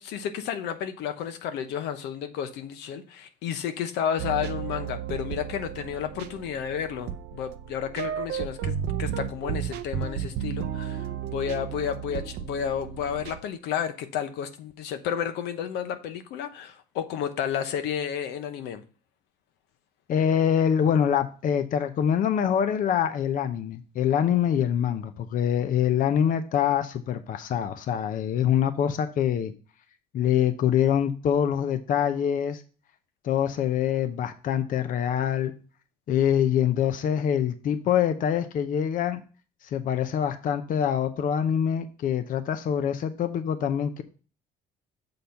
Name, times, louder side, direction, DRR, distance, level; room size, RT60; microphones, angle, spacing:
voice 1, 0.0-18.8, left 8 dB, 85° left, 0.9 m, -32 dB
sound 1, 4.2-13.4, right 9 dB, 80° right, 0.6 m, -33 dB
voice 2, 20.1-29.5 30.1-32.6 33.2-35.5 36.1-39.2 39.6-44.0, left 9 dB, 55° left, 0.6 m, -25 dB
6.9 x 3.9 x 5.7 m
cardioid pair, 110°, 17 cm